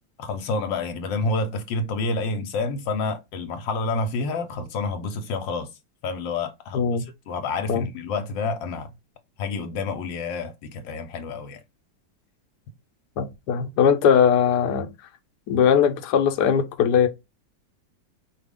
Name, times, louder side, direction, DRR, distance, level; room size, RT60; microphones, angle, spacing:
voice 1, 0.2-5.7 6.0-8.9 9.4-11.6, left 3 dB, 85° left, 1.4 m, -29 dB
voice 2, 6.7-7.0 7.7-7.9 13.2-14.9 15.5-17.1, left 7 dB, 65° left, 1.2 m, -20 dB
5.0 x 2.4 x 3.5 m
omnidirectional pair, 2.0 m